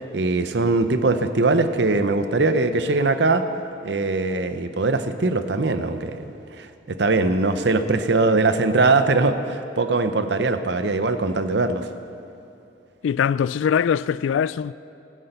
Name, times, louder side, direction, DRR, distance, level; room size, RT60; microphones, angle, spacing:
voice 1, 0.1-3.4 3.8-6.2 6.6-11.9, right 3 dB, 60° right, 0.7 m, -21 dB
voice 2, 13.0-14.7, left 7 dB, 80° left, 0.3 m, -22 dB
15.5 x 10.0 x 6.7 m
head